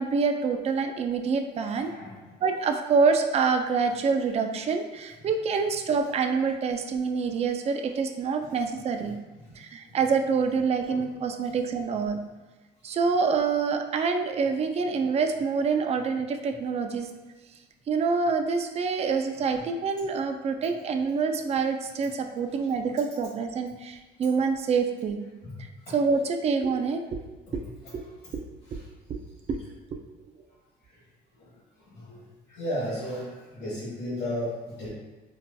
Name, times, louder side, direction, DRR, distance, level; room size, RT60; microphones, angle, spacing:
voice 1, 0.0-1.9 2.4-9.2 9.6-12.2 12.8-17.1 17.9-25.2 25.9-27.2 27.5-27.6 27.9-28.0 28.3-28.4 29.1-29.2 29.5-29.6, right 5 dB, 40° right, 6 dB, 0.4 m, -26 dB
voice 2, 1.6-2.3 9.3-9.5 9.9-10.0 10.9-11.0 11.4-11.5 15.0-15.1 25.4-25.6 25.8-25.9 27.8-28.1 28.7-28.8 30.8-31.0 31.3-34.9, equal, 85° left, -11 dB, 1.5 m, -36 dB
4.6 x 2.5 x 2.2 m, 1.2 s
cardioid pair, 110°, 17 cm